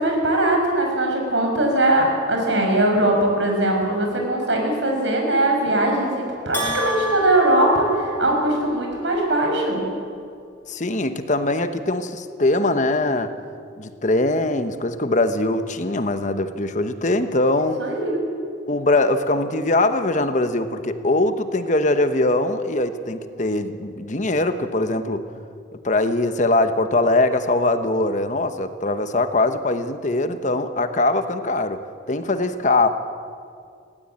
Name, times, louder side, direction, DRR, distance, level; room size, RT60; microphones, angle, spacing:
voice 1, 0.0-9.8 17.8-18.2, right 1 dB, 85° right, 1 dB, 5.7 m, -20 dB
Bell, 6.5-8.7, left 1 dB, 10° left, 4.6 m, -29 dB
voice 2, 10.7-13.3 13.8-17.9 18.7-25.3 25.8-31.8 32.1-32.9, left 2 dB, 40° left, 9 dB, 1.0 m, -22 dB
19.0 x 17.5 x 8.8 m, 2.3 s
head